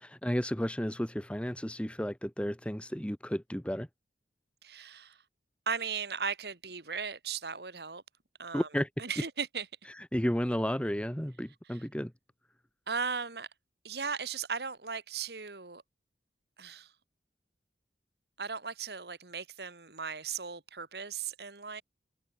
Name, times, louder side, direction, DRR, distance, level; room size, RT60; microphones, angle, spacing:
voice 1, 0.0-3.9 8.5-8.9 9.9-12.1, equal, 5° left, 1.3 m, -32 dB
voice 2, 4.6-5.2 5.7-8.0 8.4-8.7 9.0-9.7 11.7-11.8 12.9-13.5 13.8-15.8 16.6-16.9 18.4-21.8, right 5 dB, 65° right, 2.1 m, -37 dB
head